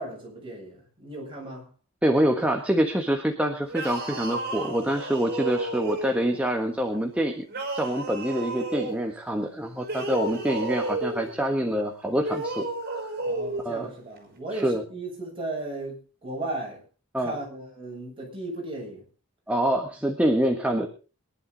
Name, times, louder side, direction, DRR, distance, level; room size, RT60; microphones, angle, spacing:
voice 1, 0.0-1.7 13.2-16.8 17.2-19.0, right 2 dB, 25° right, 7.7 m, -36 dB
voice 2, 2.0-7.4 7.7-13.1 13.6-13.9 14.5-14.8 17.1-17.4 19.5-20.9, right 1 dB, 5° right, 1.4 m, -26 dB
sound 1, 3.7-6.4 7.5-9.0 9.8-11.3 12.2-13.7, right 2 dB, 45° right, 5.6 m, -32 dB
22.5 x 11.5 x 3.9 m
head